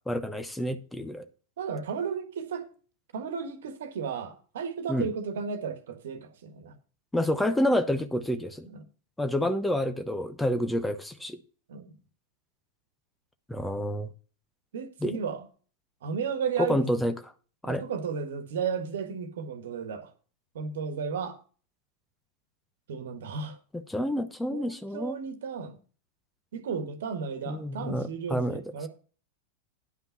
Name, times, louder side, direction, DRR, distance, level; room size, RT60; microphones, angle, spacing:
voice 1, 0.1-1.2 4.9-5.1 7.1-8.7 9.2-11.4 13.5-14.1 15.0-15.2 16.6-17.1 17.6-17.8 23.7-25.2 27.5-28.6, left 1 dB, 5° left, 0.8 m, -28 dB
voice 2, 1.6-2.7 3.1-6.7 8.6-8.8 11.7-11.9 14.7-15.5 16.0-17.1 17.6-20.1 20.5-21.4 22.9-23.6 24.5-25.8 26.5-28.9, right 6 dB, 60° right, 1.5 m, -34 dB
10.5 x 5.7 x 5.7 m
figure-of-eight pair, 90°, 0 cm